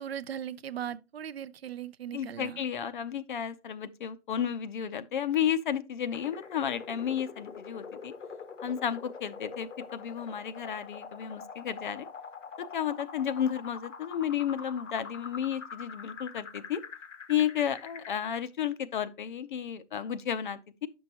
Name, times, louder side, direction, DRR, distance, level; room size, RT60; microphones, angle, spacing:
voice 1, 0.0-2.6, right 9 dB, 55° right, 0.5 m, -38 dB
voice 2, 2.1-8.1 8.6-12.1 12.7-16.8 17.3-20.9, left 9 dB, 45° left, 0.6 m, -32 dB
sound 1, 6.1-18.1, left 5 dB, 85° left, 1.2 m, -45 dB
10.0 x 6.2 x 2.8 m
hypercardioid pair, 145°, 36 cm